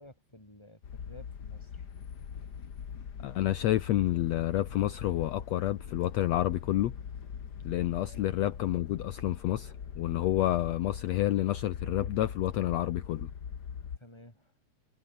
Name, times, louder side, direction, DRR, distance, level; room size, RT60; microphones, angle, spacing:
voice 1, 0.0-1.9 8.1-8.4 9.1-9.2 14.0-14.5, left 1 dB, 10° left, 7.7 m, -54 dB
sound 1, 0.8-14.0, left 7 dB, 40° left, 1.6 m, -42 dB
voice 2, 3.2-7.0 7.6-13.3, left 14 dB, 70° left, 1.9 m, -29 dB
omnidirectional pair, 3.6 m